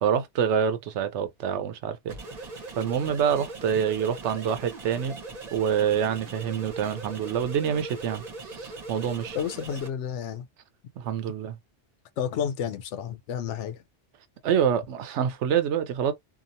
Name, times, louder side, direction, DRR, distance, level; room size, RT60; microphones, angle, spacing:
voice 1, 0.0-2.2 2.8-5.2 5.5-8.3 8.5-9.4 11.0-11.6 14.4-16.1, right 8 dB, 80° right, 0.9 m, -26 dB
sound 1, 2.1-9.9, right 3 dB, 40° right, 0.9 m, -40 dB
voice 2, 9.3-10.5 12.2-13.8, left 8 dB, 85° left, 0.9 m, -31 dB
2.9 x 2.4 x 2.5 m
omnidirectional pair, 1.2 m